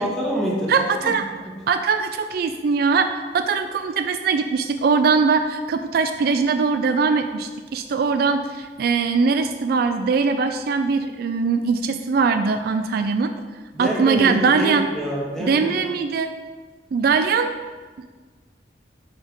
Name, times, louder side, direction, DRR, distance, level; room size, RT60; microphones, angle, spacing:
voice 1, 0.0-1.5 13.7-15.8, equal, ahead, -4 dB, 1.3 m, -26 dB
voice 2, 0.7-1.2 1.7-13.3 13.8-14.9 15.4-16.3 16.9-17.5, right 5 dB, 55° right, 8 dB, 0.3 m, -21 dB
5.1 x 4.2 x 6.0 m, 1.4 s
head